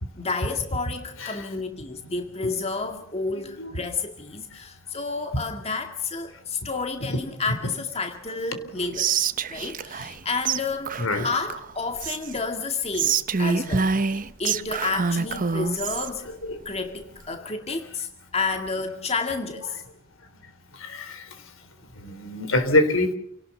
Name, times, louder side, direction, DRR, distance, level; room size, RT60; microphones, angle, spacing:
voice 1, 0.2-9.1 9.5-14.0 14.4-16.3 16.7-19.8, left 4 dB, 30° left, 5 dB, 2.1 m, -30 dB
voice 2, 3.3-3.7 7.1-7.2 11.0-11.3 16.4-16.6 20.8-21.3 22.0-23.1, left 2 dB, 70° left, 9 dB, 3.7 m, -25 dB
Whispering, 8.9-10.2 10.4-10.6 10.8-12.4 12.9-16.1, right 6 dB, 40° right, 0.9 m, -26 dB
28.5 x 18.5 x 6.9 m, 0.68 s
head